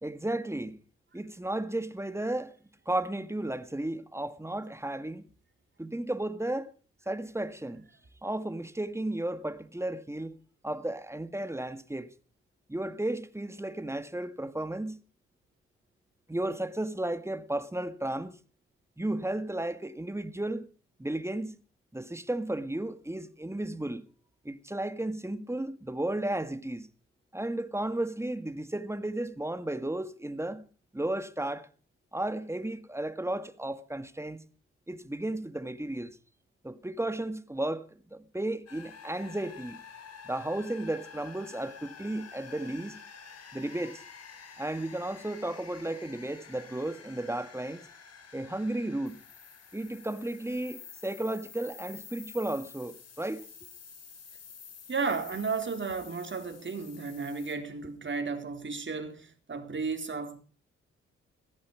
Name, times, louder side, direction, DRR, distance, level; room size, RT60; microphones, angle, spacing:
voice 1, 0.0-0.8 1.1-2.5 2.9-5.2 5.8-6.7 7.1-7.9 8.2-10.4 10.6-12.1 12.7-15.0 16.3-18.3 19.0-20.7 21.0-21.6 21.9-24.0 24.4-26.9 27.3-30.6 30.9-31.7 32.1-34.4 34.9-36.2 36.6-39.8 40.3-43.0 43.5-44.0 44.6-47.8 48.3-49.2 49.7-53.5, right 1 dB, 10° right, 1.9 m, -34 dB
sound 1, 38.7-57.5, left 6 dB, 60° left, 4.1 m, -50 dB
voice 2, 54.9-60.4, right 4 dB, 40° right, 3.9 m, -33 dB
16.0 x 15.0 x 4.7 m
hypercardioid pair, 45°, 29 cm